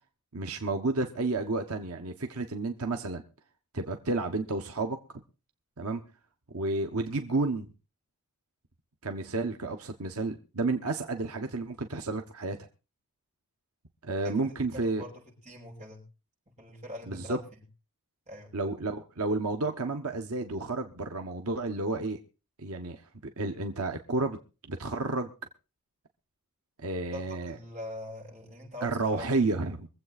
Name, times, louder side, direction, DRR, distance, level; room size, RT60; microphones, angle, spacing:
voice 1, 0.3-3.2 3.7-5.0 5.8-6.0 6.5-7.7 9.0-12.6 14.0-15.0 17.1-17.4 18.5-22.2 22.6-23.0 23.4-24.4 24.7-25.3 26.8-27.6 28.8-29.9, right 3 dB, 85° right, 5 dB, 1.3 m, -31 dB
voice 2, 14.2-16.0 16.5-17.4 18.3-18.6 27.1-29.3, left 1 dB, 30° right, -2 dB, 7.2 m, -43 dB
24.0 x 8.1 x 4.2 m, 0.33 s
head